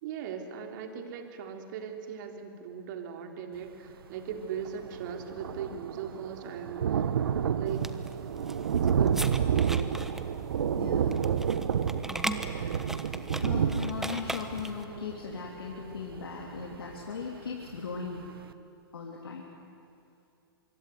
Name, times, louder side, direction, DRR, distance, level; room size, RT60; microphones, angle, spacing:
voice 1, 0.0-7.1 7.5-7.9 8.8-9.9, right 7 dB, 55° right, 4 dB, 3.7 m, -39 dB
Thunder, 4.3-4.4 4.6-17.3 17.8-17.9 18.2-18.3, right 8 dB, 75° right, 1.2 m, -30 dB
sound 1, 7.7-14.8, right 1 dB, 5° right, 1.2 m, -39 dB
voice 2, 10.8-11.4 12.3-12.8 13.4-18.2 18.9-19.4, left 5 dB, 85° left, -1 dB, 3.2 m, -38 dB
25.0 x 23.0 x 9.6 m, 2.6 s
hypercardioid pair, 120°, 12 cm